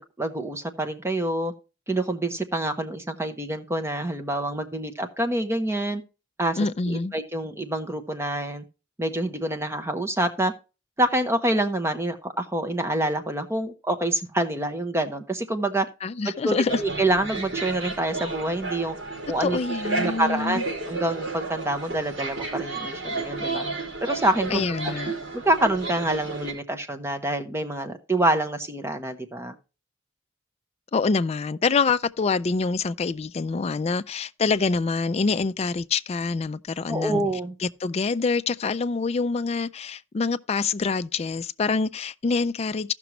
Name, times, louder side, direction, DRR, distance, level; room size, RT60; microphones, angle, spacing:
voice 1, 0.0-1.5 1.9-6.0 6.4-6.6 6.9-8.6 9.0-10.5 11.0-15.9 16.4-19.0 19.3-19.6 19.9-23.6 24.0-24.9 25.3-29.5 36.9-37.5, right 1 dB, 15° right, 0.8 m, -26 dB
voice 2, 6.6-7.1 16.0-16.8 19.4-20.6 24.5-25.1 30.9-37.2 37.6-42.9, left 4 dB, 35° left, 0.4 m, -26 dB
sound 1, 16.7-26.5, right 3 dB, 70° right, 4.0 m, -32 dB
15.0 x 6.0 x 3.0 m
head